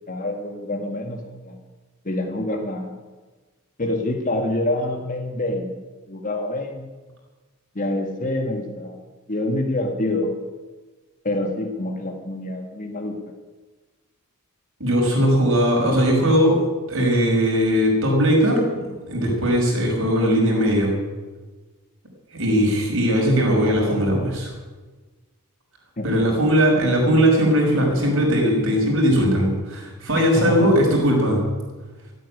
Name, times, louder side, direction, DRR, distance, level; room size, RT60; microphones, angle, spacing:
voice 1, 0.1-1.6 2.0-3.0 3.8-5.7 6.1-6.8 7.8-9.0 9.3-10.3 11.2-13.2 26.0-26.3 30.2-30.7, left 1 dB, 35° left, 3 dB, 1.9 m, -26 dB
voice 2, 14.8-16.6 16.9-20.9 22.3-24.5 26.0-31.5, equal, 60° right, -1 dB, 6.0 m, -19 dB
15.0 x 9.2 x 9.8 m, 1.3 s
head